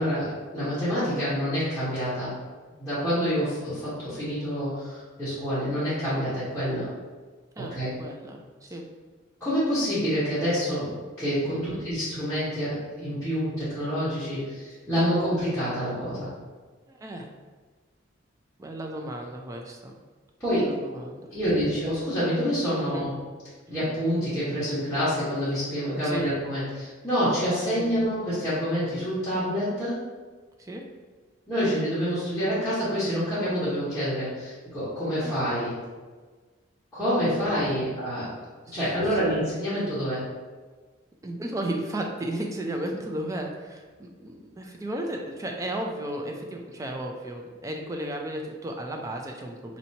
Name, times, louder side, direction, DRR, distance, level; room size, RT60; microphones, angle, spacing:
voice 1, 0.0-2.3 2.8-6.9 7.6-7.9 9.4-16.3 20.4-20.7 21.3-23.1 23.7-30.0 31.5-35.7 36.9-40.2, equal, 5° left, -15 dB, 1.2 m, -27 dB
voice 2, 7.6-8.9 11.5-11.9 16.9-17.3 18.6-20.0 20.5-21.3 22.8-23.1 26.0-26.3 27.6-27.9 30.6-30.9 35.2-35.4 37.4-37.9 38.7-38.8 39.0-39.4 41.2-49.8, right 1 dB, 15° right, 2 dB, 0.3 m, -34 dB
4.2 x 2.8 x 2.8 m, 1.4 s
head